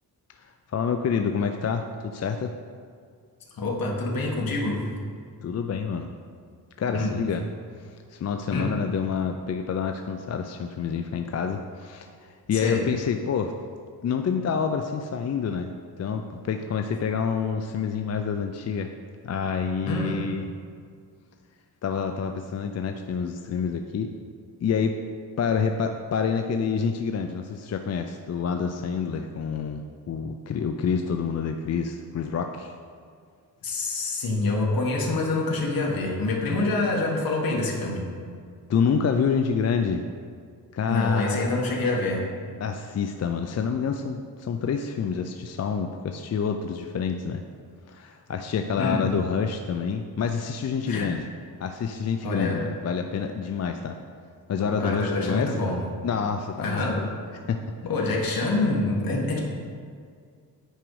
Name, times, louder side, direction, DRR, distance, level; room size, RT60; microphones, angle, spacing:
voice 1, 0.7-2.5 5.4-6.1 6.8-7.4 7.8-12.1 12.5-13.5 14.0-18.9 19.2-20.5 21.8-24.1 24.6-24.9 25.4-32.7 38.7-40.0 40.7-41.6 42.6-47.4 47.9-51.2 51.6-53.9 54.5-55.5 56.0-57.2 57.5-57.6, left 6 dB, 45° left, 5 dB, 0.4 m, -27 dB
voice 2, 3.6-4.8 6.9-7.2 8.5-8.7 12.5-12.8 19.8-20.2 33.6-38.0 40.9-42.2 48.7-49.1 50.9-51.1 52.2-52.6 54.8-55.8 56.6-57.0 57.8-59.4, left 2 dB, 65° left, -2 dB, 1.5 m, -26 dB
9.2 x 5.1 x 4.7 m, 2.1 s
wide cardioid pair, 120°, 38 cm